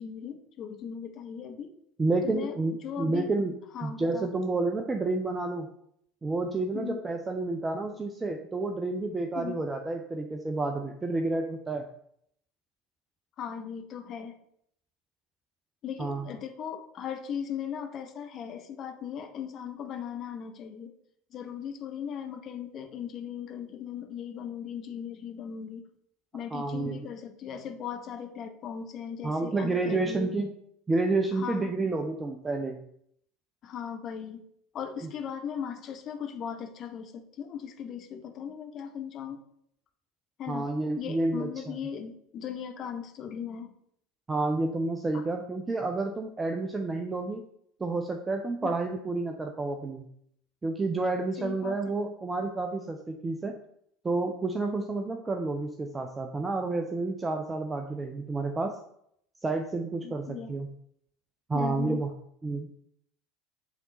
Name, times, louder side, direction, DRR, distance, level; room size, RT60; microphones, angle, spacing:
voice 1, 0.0-1.7 2.2-2.5 2.8-3.3 3.7-4.3 6.7-7.0 9.3-9.6 13.4-14.4 15.8-20.9 21.3-25.9 26.3-30.3 31.3-31.7 33.6-34.4 34.7-39.4 40.4-40.7 41.0-43.7 45.1-45.3 48.6-48.8 51.4-52.0 60.0-60.5 61.5-62.1, left 8 dB, 40° left, 6 dB, 0.9 m, -38 dB
voice 2, 2.0-3.5 3.8-5.7 6.2-11.8 16.0-16.3 26.5-27.0 29.2-30.5 30.9-32.8 40.5-41.7 44.3-47.4 47.8-50.1 50.6-53.6 54.0-58.7 59.4-60.7 61.5-62.1 62.4-62.8, right 3 dB, 20° right, 4 dB, 0.6 m, -30 dB
8.1 x 3.6 x 4.1 m, 0.71 s
figure-of-eight pair, 70°, 0 cm